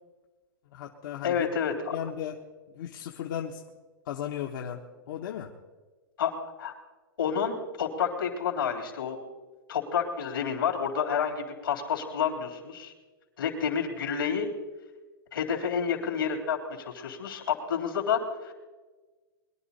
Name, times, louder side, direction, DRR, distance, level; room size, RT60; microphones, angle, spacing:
voice 1, 0.6-1.5 1.9-2.4 2.7-3.6 4.0-5.6, left 10 dB, 65° left, 1 dB, 1.2 m, -36 dB
voice 2, 1.2-1.7 6.2-6.3 6.6-6.7 7.2-9.2 9.7-12.9 13.4-14.5 15.3-18.5, left 7 dB, 85° left, 2 dB, 3.4 m, -29 dB
22.0 x 11.0 x 4.2 m, 1.3 s
hypercardioid pair, 125°, 12 cm